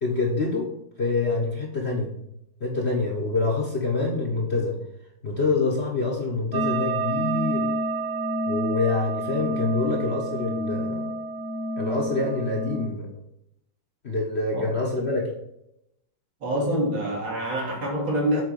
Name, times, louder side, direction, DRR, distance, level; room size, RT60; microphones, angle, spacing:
voice 1, 0.0-2.1 2.6-4.7 5.2-7.7 8.5-11.1 11.8-13.1 14.0-15.2, left 3 dB, 40° left, 0 dB, 1.1 m, -26 dB
sound 1, 6.5-12.9, right 1 dB, 55° right, 0.8 m, -28 dB
voice 2, 16.4-18.4, right 1 dB, 70° right, -3 dB, 3.4 m, -26 dB
7.8 x 4.3 x 6.2 m, 0.79 s
omnidirectional pair, 2.3 m